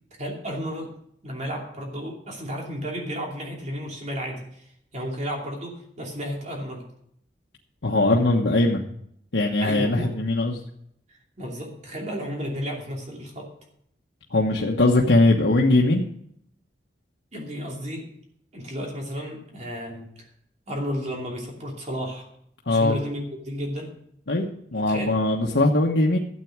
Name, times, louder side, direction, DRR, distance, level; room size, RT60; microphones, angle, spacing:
voice 1, 0.2-0.9 1.2-4.6 4.9-6.9 9.6-10.1 11.4-13.5 17.3-18.1 18.5-20.3 20.7-22.3 22.7-23.9 24.9-25.1, equal, 40° right, -1 dB, 2.8 m, -33 dB
voice 2, 7.8-8.8 9.3-10.6 14.3-16.1 22.7-23.0 24.3-26.2, left 2 dB, 90° left, -1 dB, 1.2 m, -20 dB
12.5 x 8.4 x 6.0 m, 0.70 s
head